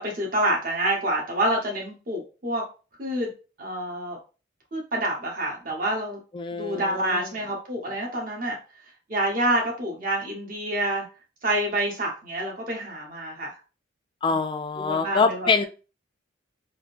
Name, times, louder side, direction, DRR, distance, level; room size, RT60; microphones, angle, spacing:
voice 1, 0.0-2.6 3.0-3.3 3.6-4.2 4.7-6.2 6.5-8.6 9.1-11.0 11.4-13.5 14.3-14.4 14.8-15.5, right 1 dB, 45° right, 0 dB, 0.9 m, -27 dB
voice 2, 6.3-7.2 14.2-15.7, left 4 dB, 25° left, 7 dB, 0.3 m, -25 dB
3.6 x 2.5 x 2.5 m, 0.33 s
head